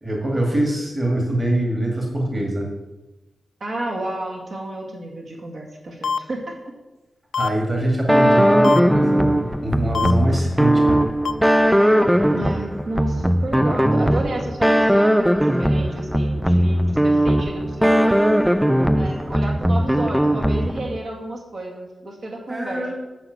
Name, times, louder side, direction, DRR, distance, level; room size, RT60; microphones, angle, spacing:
voice 1, 0.0-2.7 7.4-11.0 22.5-22.9, right 1 dB, 20° right, -1 dB, 2.0 m, -23 dB
voice 2, 3.6-6.5 12.3-18.1 19.0-22.9, right 1 dB, 55° right, -1 dB, 2.2 m, -31 dB
sound 1, 6.0-6.2 7.3-7.5 8.6-8.8 9.9-10.1 11.2-11.3, left 5 dB, 85° left, 0.4 m, -22 dB
sound 2, 8.1-21.0, equal, ahead, 0.4 m, -18 dB
9.9 x 5.9 x 8.0 m, 1.1 s
wide cardioid pair, 165°, 0 cm